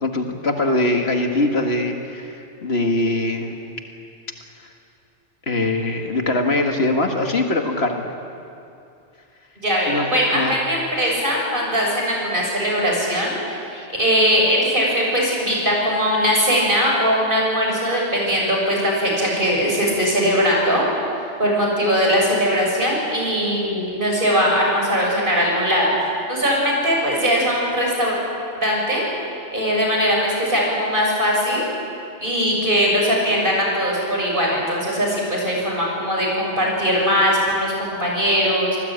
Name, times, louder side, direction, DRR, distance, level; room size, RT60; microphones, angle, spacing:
voice 1, 0.0-3.7 5.5-8.1 9.9-10.6, left 2 dB, 65° left, 3 dB, 2.2 m, -22 dB
voice 2, 9.6-20.8 21.4-25.9 26.3-28.2 28.6-29.0 29.5-31.6 32.2-38.8, equal, 50° right, -2 dB, 7.0 m, -20 dB
26.5 x 19.0 x 8.9 m, 2.6 s
omnidirectional pair, 1.2 m